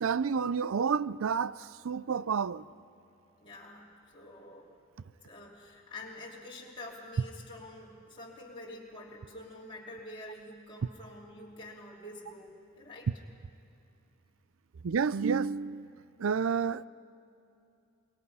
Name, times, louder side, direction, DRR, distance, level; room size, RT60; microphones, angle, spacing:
voice 1, 0.0-2.7 14.8-15.9 16.2-16.9, right 6 dB, 65° right, 0.4 m, -30 dB
voice 2, 3.4-4.7 5.2-13.1, left 1 dB, 25° left, 3.1 m, -47 dB
27.0 x 22.5 x 5.6 m
head